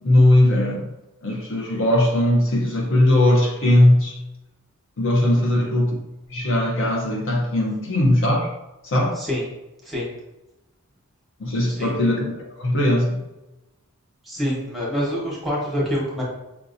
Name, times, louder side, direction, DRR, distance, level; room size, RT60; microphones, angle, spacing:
voice 1, 0.0-0.9 1.2-4.2 5.0-6.0 6.3-8.5 8.8-9.2 11.4-13.3, left 1 dB, 60° left, 0 dB, 0.7 m, -19 dB
voice 2, 14.2-16.2, equal, ahead, -5 dB, 1.1 m, -26 dB
5.7 x 2.7 x 2.6 m, 0.96 s
head